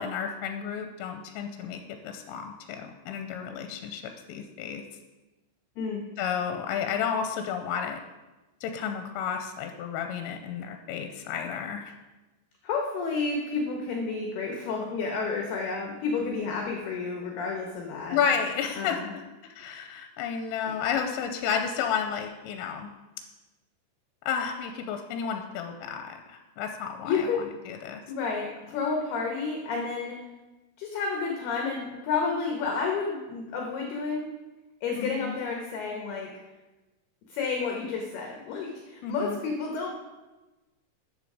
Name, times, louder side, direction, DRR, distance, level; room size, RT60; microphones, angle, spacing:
voice 1, 0.0-4.8 6.2-8.0 8.6-11.9 18.1-22.9 24.3-28.0 35.0-35.4 39.0-39.4, left 7 dB, 85° left, 6 dB, 3.2 m, -32 dB
voice 2, 12.6-18.2 18.8-19.1 27.0-27.4 28.1-30.2 30.8-34.3 34.8-36.3 37.3-39.9, left 4 dB, 70° left, 1 dB, 2.6 m, -30 dB
13.0 x 10.0 x 4.9 m, 1.1 s
omnidirectional pair, 6.0 m